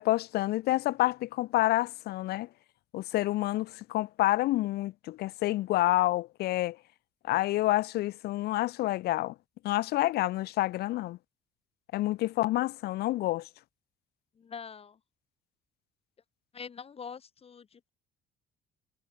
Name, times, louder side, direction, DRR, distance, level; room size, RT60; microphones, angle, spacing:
voice 1, 0.0-2.5 2.9-6.8 7.2-9.4 9.6-11.2 11.9-13.5, left 17 dB, 70° left, 0.6 m, -28 dB
voice 2, 14.4-15.0 16.5-17.9, left 6 dB, 35° left, 2.1 m, -44 dB
cardioid pair, 110°, 17 cm